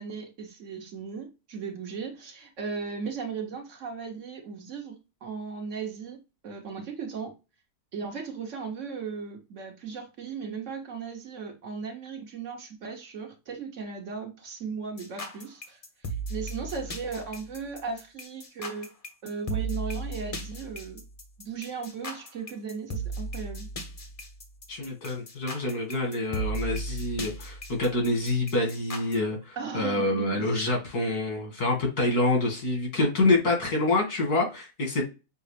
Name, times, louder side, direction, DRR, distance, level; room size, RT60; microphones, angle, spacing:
voice 1, 0.0-7.3 7.9-18.9 19.2-21.0 21.4-23.7 29.6-30.6, right 5 dB, 55° right, 1.2 m, -37 dB
sound 1, 15.0-29.2, right 2 dB, 35° left, 0.6 m, -36 dB
voice 2, 24.7-35.1, left 2 dB, 90° left, 2.5 m, -26 dB
6.3 x 2.4 x 3.3 m
omnidirectional pair, 1.6 m